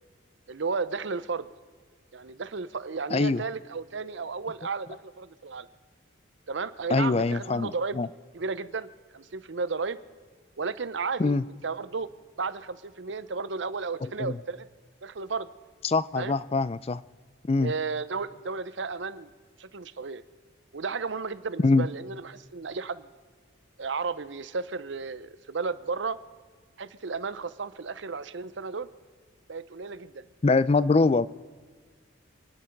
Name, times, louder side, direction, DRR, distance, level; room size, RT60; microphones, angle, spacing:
voice 1, 0.5-1.5 2.1-5.7 6.5-8.0 8.3-10.0 10.6-11.4 11.6-12.1 12.4-14.7 15.0-15.5 16.1-16.4 17.6-19.3 19.6-20.2 20.7-23.1 23.8-26.2 26.8-28.9 29.5-30.2, right 4 dB, 65° right, 15 dB, 0.7 m, -33 dB
voice 2, 3.1-3.4 6.9-8.1 11.2-11.4 14.0-14.4 15.8-17.0 17.5-17.7 21.6-21.9 30.4-31.3, left 3 dB, 30° left, 18 dB, 0.4 m, -24 dB
27.5 x 10.0 x 5.3 m, 1.5 s
head